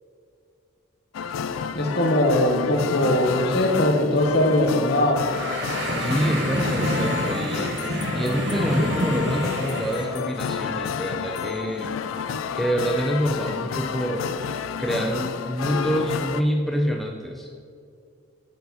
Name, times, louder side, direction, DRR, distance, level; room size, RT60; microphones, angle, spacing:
sound 1, 1.1-16.4, left 7 dB, 90° left, 0.3 m, -30 dB
voice 1, 1.7-5.3, left 1 dB, 50° left, 3 dB, 0.8 m, -21 dB
sound 2, 5.2-10.2, right 1 dB, 60° right, 0.9 m, -27 dB
voice 2, 6.0-11.9 12.5-14.3 14.8-17.5, equal, ahead, 1 dB, 0.3 m, -27 dB
8.1 x 4.6 x 4.0 m, 2.4 s
head